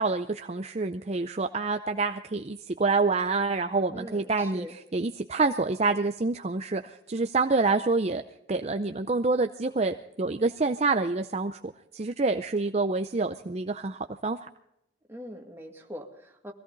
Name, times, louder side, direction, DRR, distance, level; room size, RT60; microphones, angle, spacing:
voice 1, 0.0-4.7 4.9-8.2 8.5-11.6 11.9-14.4, right 3 dB, 35° right, 7 dB, 0.6 m, -27 dB
voice 2, 3.9-4.8 15.1-16.5, equal, 15° right, 1 dB, 2.1 m, -42 dB
22.0 x 16.5 x 4.0 m, 0.78 s
head